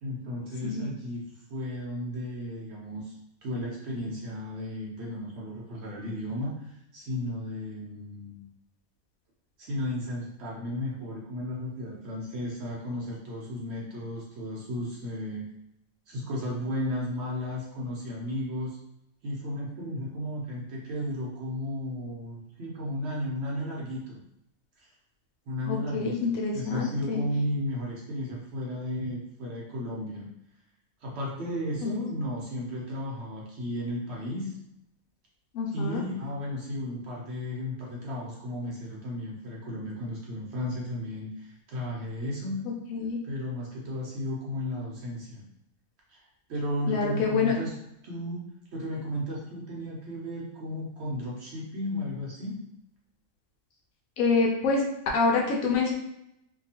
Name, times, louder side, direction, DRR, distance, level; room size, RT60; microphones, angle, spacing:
voice 1, 0.0-1.2 1.5-3.2 3.4-8.4 9.6-15.5 16.1-18.8 19.2-24.2 24.8-24.9 25.5-30.3 31.0-34.5 35.7-42.7 43.2-45.5 46.1-46.2 46.5-47.7 48.0-48.5 48.7-52.6, left 1 dB, 60° right, -4 dB, 0.8 m, -34 dB
voice 2, 25.7-27.2 31.8-31.9 35.5-36.0 42.9-43.2 46.9-47.5 54.2-54.8 55.1-56.0, left 4 dB, 75° left, 0 dB, 1.0 m, -26 dB
2.7 x 2.3 x 2.7 m, 0.82 s
omnidirectional pair, 1.5 m